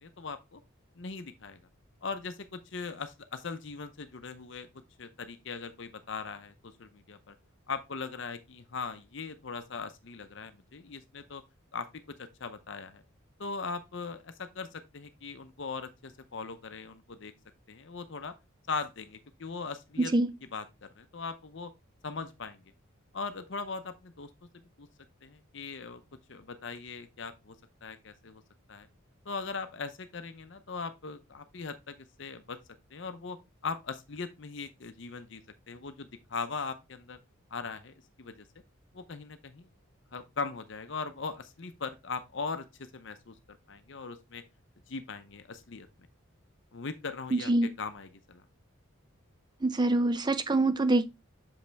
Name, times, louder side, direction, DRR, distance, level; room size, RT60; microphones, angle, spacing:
voice 1, 0.0-0.6 1.0-1.6 2.0-4.7 5.0-6.5 6.8-7.3 7.7-11.4 11.7-11.9 12.2-13.0 13.4-17.3 17.7-18.3 18.7-20.1 20.5-21.7 22.0-22.6 23.1-24.3 24.8-24.9 25.2-26.0 26.3-27.6 27.8-28.4 28.7-28.9 29.3-32.6 32.9-33.4 33.6-35.4 35.7-37.2 37.5-38.4 38.9-39.7 40.1-43.4 43.7-44.4 44.9-45.9 46.7-47.5 47.8-48.4, left 4 dB, 55° left, 0.7 m, -39 dB
voice 2, 20.0-20.3 47.3-47.7 49.6-51.0, right 2 dB, 20° right, 0.5 m, -25 dB
7.1 x 5.3 x 3.4 m
head